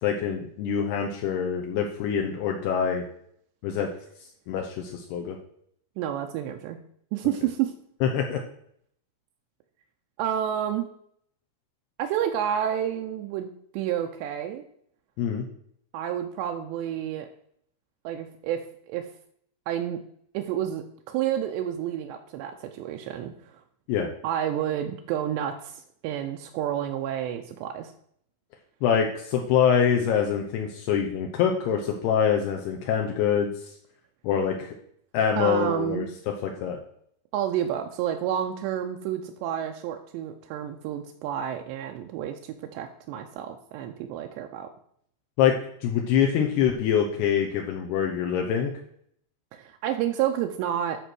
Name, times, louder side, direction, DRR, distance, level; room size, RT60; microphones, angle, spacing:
voice 1, 0.0-3.0 3.6-3.9 4.5-5.4 8.0-8.4 15.2-15.5 23.9-24.1 28.8-33.5 34.2-34.7 35.1-36.8 45.4-48.7, left 8 dB, 75° left, 1 dB, 2.8 m, -25 dB
voice 2, 6.0-6.8 7.1-7.7 10.2-10.9 12.0-14.6 15.9-17.3 18.0-18.6 18.9-19.1 19.7-20.0 20.3-23.3 24.2-27.9 35.4-36.1 37.3-44.7 49.5-51.0, right 10 dB, 85° right, 4 dB, 2.9 m, -30 dB
11.0 x 4.4 x 6.2 m, 0.65 s
omnidirectional pair, 5.0 m